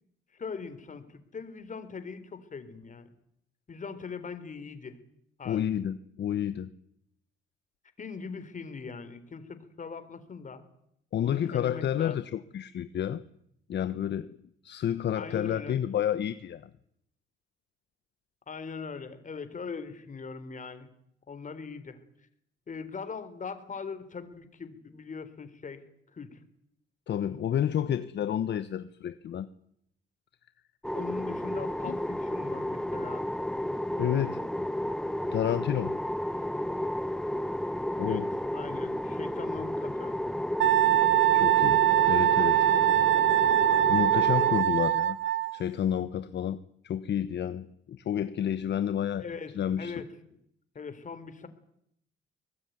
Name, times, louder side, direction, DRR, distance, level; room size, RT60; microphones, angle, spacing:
voice 1, 0.3-3.1 3.7-5.0 5.4-5.6 8.0-10.6 11.2-12.2 15.1-15.8 18.5-20.9 21.3-22.0 22.7-25.8 26.1-26.4 30.9-33.3 38.0-38.2 38.5-40.2 49.2-50.1 50.7-51.5, left 5 dB, 40° left, 3.9 m, -41 dB
voice 2, 5.4-6.7 11.1-13.2 13.7-14.4 14.6-16.7 27.1-29.5 31.8-32.0 34.0-34.4 35.3-36.0 38.0-38.3 41.3-42.7 43.9-45.2 45.5-49.3 49.5-49.9, left 10 dB, 60° left, 1.1 m, -30 dB
sound 1, 30.8-44.6, left 1 dB, 5° left, 0.9 m, -32 dB
Wind instrument woodwind instrument, 40.6-45.6, right 13 dB, 75° right, 1.5 m, -23 dB
23.5 x 19.5 x 9.5 m
cardioid pair, 90°, 20 cm